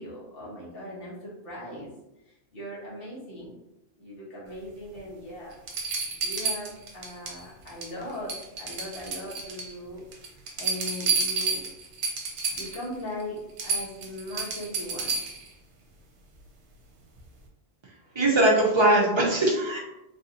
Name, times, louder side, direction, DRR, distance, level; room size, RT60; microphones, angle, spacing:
voice 1, 0.0-1.9 2.3-3.5 4.0-5.5 6.0-11.6 12.5-15.2, left 1 dB, 55° left, -7 dB, 1.3 m, -39 dB
sound 1, 5.0-5.1 5.7-7.4 7.7-8.0 8.3-9.7 10.1-12.8 13.2-13.3 13.6-15.5 17.2-17.3, right 4 dB, 75° right, 1.0 m, -30 dB
voice 2, 18.1-19.8, right 1 dB, 35° right, -2 dB, 0.5 m, -21 dB
3.2 x 2.6 x 2.8 m, 0.93 s
omnidirectional pair, 1.2 m